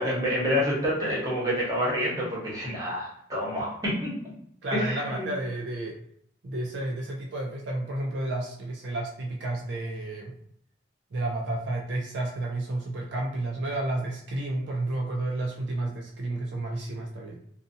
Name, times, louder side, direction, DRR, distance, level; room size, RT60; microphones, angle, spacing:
voice 1, 0.0-4.1 4.7-5.3, equal, 20° right, -5 dB, 1.0 m, -28 dB
voice 2, 4.6-6.0 6.4-10.3 11.1-17.4, right 2 dB, 65° right, 0 dB, 0.4 m, -31 dB
2.5 x 2.2 x 2.6 m, 0.68 s
head